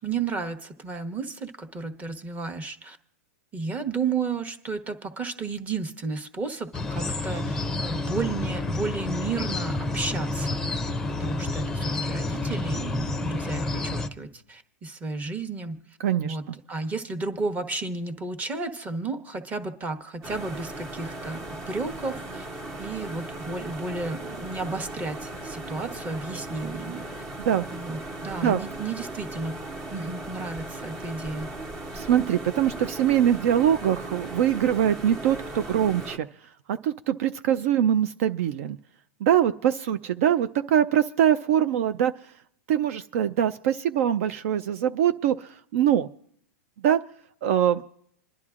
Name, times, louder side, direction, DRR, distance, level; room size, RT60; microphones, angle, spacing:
voice 1, 0.0-3.0 3.5-10.8 11.1-15.8 16.2-16.4 16.7-22.4 22.8-27.0 27.7-29.6 29.9-31.5, right 4 dB, 20° right, 7 dB, 1.0 m, -32 dB
sound 1, 6.7-14.1, left 2 dB, 5° left, 0.6 m, -29 dB
voice 2, 16.0-16.4 27.4-27.7 28.4-28.6 31.9-36.3 36.7-38.8 39.2-42.1 42.7-46.1 46.8-47.0 47.4-47.8, right 10 dB, 60° right, 10 dB, 0.4 m, -23 dB
sound 2, 20.2-36.2, right 2 dB, 35° right, 1.3 m, -37 dB
27.5 x 10.5 x 2.4 m, 0.68 s
hypercardioid pair, 135°, 8 cm